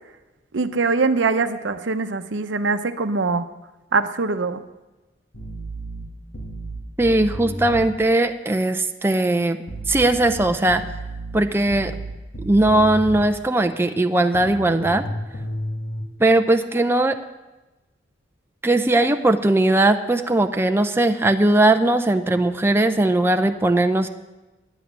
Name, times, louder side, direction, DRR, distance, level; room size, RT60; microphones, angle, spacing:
voice 1, 0.5-3.5 3.9-4.6, right 4 dB, 80° right, 10 dB, 0.7 m, -22 dB
sound 1, 5.3-7.9 9.7-13.3 14.3-16.0, right 1 dB, 65° left, 2.3 m, -32 dB
voice 2, 7.0-9.6 9.9-10.8 11.3-11.9 12.4-15.0 16.2-17.2 18.6-24.1, right 2 dB, 15° right, 7 dB, 0.5 m, -19 dB
9.9 x 8.1 x 9.4 m, 1.1 s
head